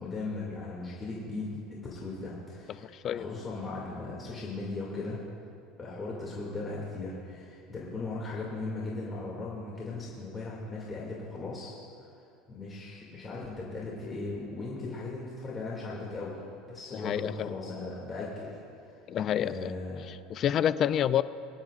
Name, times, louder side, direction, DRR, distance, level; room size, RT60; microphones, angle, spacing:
voice 1, 0.0-5.2 5.8-12.1 12.5-16.4 16.7-18.6 19.4-20.1 20.8-20.9, left 3 dB, 25° left, -4 dB, 2.2 m, -38 dB
voice 2, 2.9-3.2 16.9-17.5 19.1-19.7 20.1-21.2, left 10 dB, 45° left, 15 dB, 0.3 m, -28 dB
23.0 x 10.5 x 2.4 m, 2.6 s
supercardioid pair, 115°, 0 cm